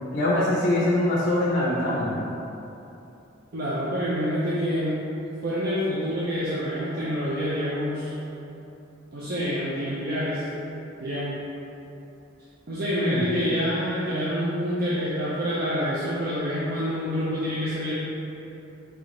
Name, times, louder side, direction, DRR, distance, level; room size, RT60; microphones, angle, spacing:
voice 1, 0.1-2.2 13.0-13.3 15.1-15.2, left 1 dB, 40° left, -5 dB, 0.5 m, -23 dB
voice 2, 3.5-5.0 5.4-8.1 9.1-10.5 11.0-11.3 12.7-17.9, equal, 50° right, -9 dB, 0.5 m, -27 dB
3.5 x 3.2 x 3.7 m, 2.9 s
head